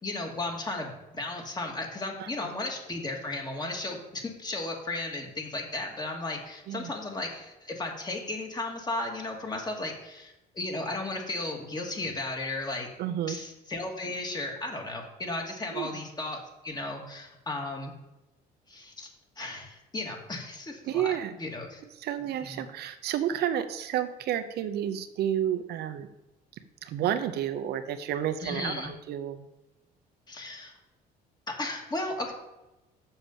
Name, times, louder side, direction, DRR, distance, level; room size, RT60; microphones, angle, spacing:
voice 1, 0.0-12.9 13.3-17.9 18.7-19.1 19.4-21.8 22.4-22.6 28.4-28.9 30.3-30.7 31.5-32.3, left 2 dB, 25° left, 1 dB, 2.3 m, -35 dB
voice 2, 13.0-13.4 15.7-15.9 20.9-21.3 22.0-26.1 26.8-29.5, right 10 dB, 75° right, 9 dB, 0.8 m, -30 dB
7.1 x 6.6 x 7.4 m, 0.96 s
cardioid pair, 110°, 17 cm